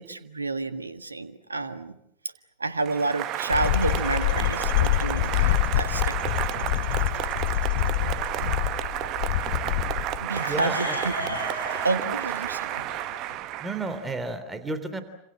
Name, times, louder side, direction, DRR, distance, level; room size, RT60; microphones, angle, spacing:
voice 1, 0.0-2.0 2.6-6.1 6.5-6.7 7.5-8.6 9.9-11.1 11.4-11.6 11.8-12.9, right 3 dB, 80° right, 10 dB, 1.6 m, -30 dB
Applause, 2.8-14.3, right 14 dB, 40° right, 1.1 m, -31 dB
sound 1, 3.5-10.2, left 16 dB, 50° left, 1.1 m, -26 dB
sound 2, 4.9-13.4, left 1 dB, 85° left, 6.9 m, -39 dB
voice 2, 10.4-11.0 13.6-15.0, right 2 dB, 10° right, 10 dB, 3.4 m, -31 dB
29.0 x 27.0 x 7.5 m, 0.76 s
figure-of-eight pair, 90°, 0 cm